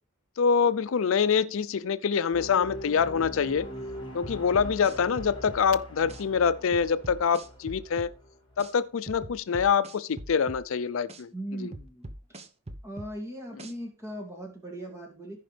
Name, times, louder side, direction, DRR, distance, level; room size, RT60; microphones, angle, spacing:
voice 1, 0.4-3.7 4.1-8.1 8.6-11.3, left 6 dB, 65° left, 0.4 m, -25 dB
sound 1, 2.3-8.6, equal, 25° left, 2.9 m, -42 dB
sound 2, 4.2-5.6 6.1-6.2 6.7-8.1 8.6-8.7 9.1-10.6 11.1-11.2 11.7-13.1 13.6-13.7, right 1 dB, 30° right, 0.8 m, -42 dB
voice 2, 11.3-12.4 12.8-15.4, right 1 dB, 15° right, 2.3 m, -39 dB
15.0 x 5.1 x 3.3 m
head